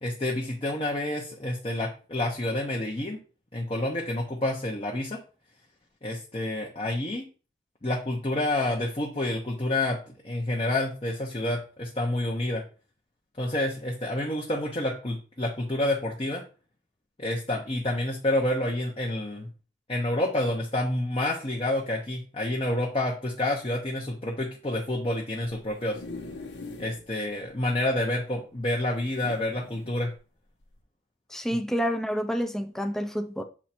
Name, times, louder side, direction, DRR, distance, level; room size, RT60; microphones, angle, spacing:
voice 1, 0.0-3.2 3.5-5.2 6.0-7.3 7.8-12.6 13.4-16.4 17.2-19.5 19.9-26.0 26.8-30.1, left 1 dB, 30° left, 0.8 m, -28 dB
sound 1, 25.5-27.0 27.5-27.6 27.8-27.9 29.0-29.9 30.6-30.8, left 3 dB, 85° left, 1.1 m, -42 dB
voice 2, 31.3-33.4, equal, ahead, 0.5 m, -28 dB
7.3 x 3.2 x 4.3 m
head